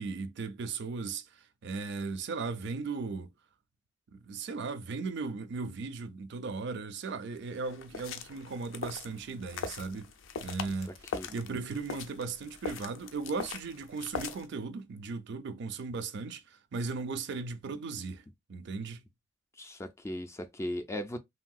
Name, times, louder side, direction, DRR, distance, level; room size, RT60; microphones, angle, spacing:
voice 1, 0.0-3.3 4.1-10.1 10.4-10.9 11.3-18.2 18.5-19.0, right 4 dB, 60° right, 0.4 m, -37 dB
sound 1, 7.4-14.5, left 5 dB, 75° left, 0.5 m, -41 dB
voice 2, 19.6-21.2, left 1 dB, 15° left, 0.3 m, -37 dB
3.2 x 2.7 x 2.3 m
head